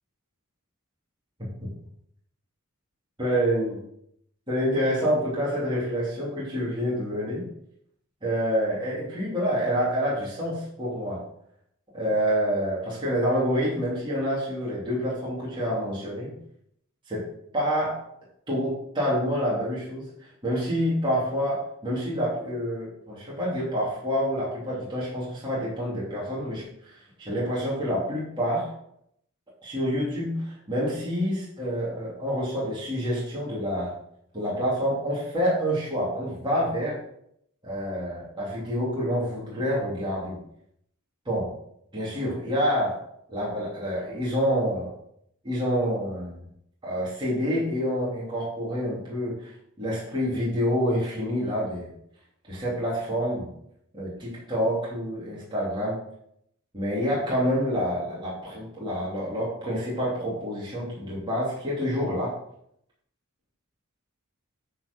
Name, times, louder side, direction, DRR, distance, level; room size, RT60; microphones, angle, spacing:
voice 1, 1.4-1.7 3.2-3.8 4.5-7.4 8.2-11.2 11.9-16.3 17.1-17.3 17.5-18.0 18.5-20.1 20.4-28.7 29.6-33.9 34.3-37.0 37.6-40.4 41.2-41.5 41.9-43.0 43.3-44.9 45.4-46.4 46.8-49.5 49.8-51.9 52.5-53.5 53.9-56.0 56.7-62.3, equal, 20° right, -7 dB, 3.0 m, -27 dB
9.5 x 4.8 x 5.4 m, 0.73 s
head